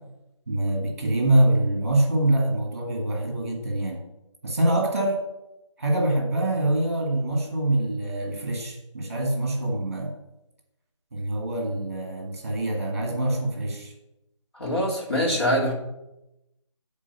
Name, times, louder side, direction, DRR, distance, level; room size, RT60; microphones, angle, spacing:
voice 1, 0.5-4.0 4.4-5.2 5.8-10.1 11.1-13.9, right 1 dB, 30° right, 1 dB, 1.8 m, -24 dB
voice 2, 14.5-15.7, equal, 50° left, -4 dB, 2.6 m, -24 dB
9.0 x 3.9 x 6.8 m, 0.92 s
figure-of-eight pair, 180°, 17 cm